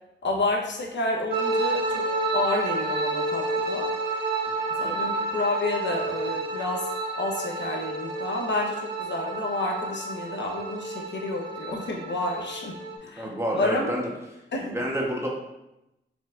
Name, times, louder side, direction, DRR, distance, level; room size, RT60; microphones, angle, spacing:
voice 1, 0.2-2.1 2.3-3.9 4.8-6.9 7.2-12.7 13.0-13.9 14.5-14.6, left 2 dB, 60° left, 0 dB, 1.0 m, -30 dB
sound 1, 1.3-13.0, right 2 dB, 55° right, 1.0 m, -30 dB
voice 2, 13.1-14.1 14.6-15.3, equal, 15° right, -2 dB, 1.1 m, -29 dB
4.7 x 4.1 x 2.5 m, 0.90 s
cardioid pair, 70°, 20 cm